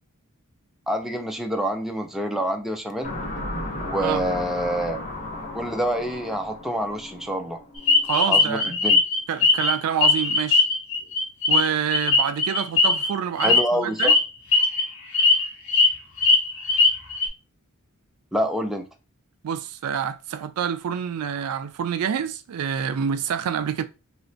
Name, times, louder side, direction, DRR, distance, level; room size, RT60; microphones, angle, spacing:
voice 1, 0.9-3.1 3.8-5.0 5.5-7.6 8.3-9.0 13.4-14.1 18.3-18.9, equal, ahead, 0.4 m, -27 dB
sound 1, 3.0-8.3, left 1 dB, 35° left, 1.0 m, -34 dB
sound 2, 7.9-9.7 10.0-13.1 13.4-13.6 14.0-14.2 14.5-14.8 15.1-15.9 16.2-17.3, left 4 dB, 70° left, 1.0 m, -19 dB
voice 2, 8.0-8.8 9.3-10.7 11.5-14.1 19.4-23.8, right 8 dB, 75° right, 0.4 m, -27 dB
3.1 x 2.8 x 2.7 m
head